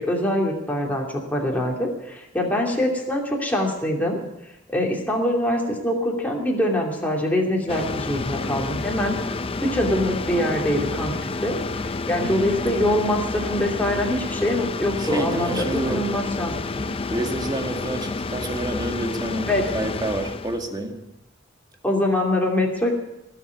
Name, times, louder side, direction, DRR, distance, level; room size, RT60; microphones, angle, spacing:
voice 1, 0.0-4.2 4.7-9.2 9.6-11.6 12.1-16.5 19.5-19.6 21.8-22.9, left 1 dB, 10° left, -1 dB, 2.8 m, -24 dB
sound 1, 7.7-20.7, left 3 dB, 30° left, 0.5 m, -29 dB
voice 2, 15.0-16.0 17.1-19.5 19.7-21.0, right 1 dB, 20° right, 3 dB, 2.0 m, -28 dB
18.0 x 7.9 x 9.6 m, 0.88 s
head